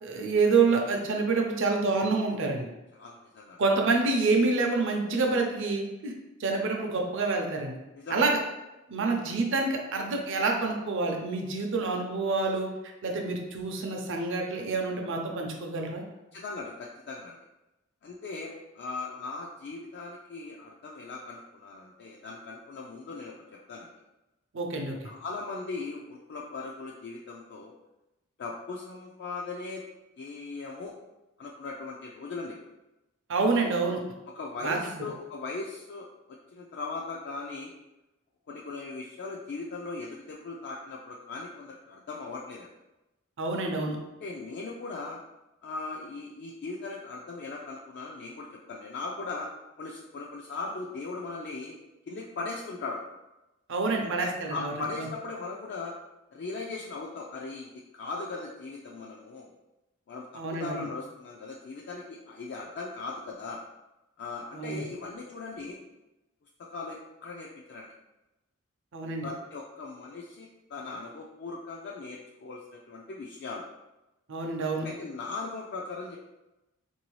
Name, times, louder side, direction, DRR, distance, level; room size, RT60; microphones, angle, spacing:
voice 1, 0.0-2.7 3.6-6.1 6.4-7.8 8.1-8.4 8.9-12.7 13.0-16.0 24.5-25.1 33.3-34.0 34.6-34.8 43.4-44.0 53.7-55.1 60.4-60.9 64.5-64.8 68.9-69.3 74.3-74.9, right 3 dB, 60° right, 2 dB, 0.6 m, -27 dB
voice 2, 2.9-3.6 7.9-8.3 16.3-17.4 18.0-23.3 23.7-23.9 25.0-27.7 28.4-29.8 30.2-30.9 31.4-32.6 34.3-36.1 36.5-37.7 38.5-42.7 44.2-45.2 45.6-49.5 49.8-51.7 52.1-53.0 54.0-55.9 56.3-59.5 60.1-63.6 64.2-65.8 66.7-67.9 69.0-73.6 74.8-76.2, left 3 dB, 50° left, -2 dB, 0.3 m, -39 dB
3.7 x 2.7 x 3.1 m, 0.99 s
head